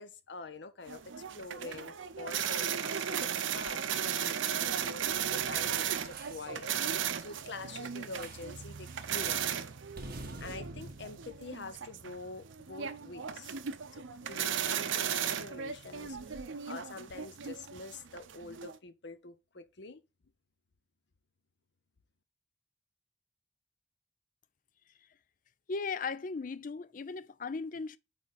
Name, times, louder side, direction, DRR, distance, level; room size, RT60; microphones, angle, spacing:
voice 1, 0.0-9.7 10.4-13.6 13.9-20.0, left 3 dB, 65° left, 0.8 m, -46 dB
sound 1, 0.9-18.8, right 8 dB, 85° right, 0.7 m, -36 dB
sound 2, 5.5-6.5 8.2-8.6 8.9-9.2 10.0-12.3, right 2 dB, 50° right, 1.5 m, -48 dB
voice 2, 25.7-28.0, left 4 dB, 45° left, 0.4 m, -37 dB
8.7 x 3.3 x 4.1 m
head